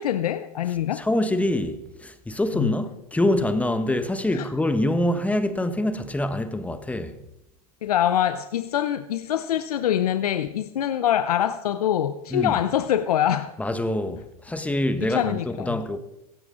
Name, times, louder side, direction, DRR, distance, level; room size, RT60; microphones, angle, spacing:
voice 1, 0.0-1.0 2.5-2.8 4.3-4.5 7.8-13.5 15.1-15.8, left 10 dB, 85° left, 0.7 m, -24 dB
voice 2, 0.9-7.2 12.3-12.6 13.6-16.0, left 1 dB, 5° left, 1.2 m, -25 dB
16.0 x 14.5 x 3.9 m
hypercardioid pair, 110°, 19 cm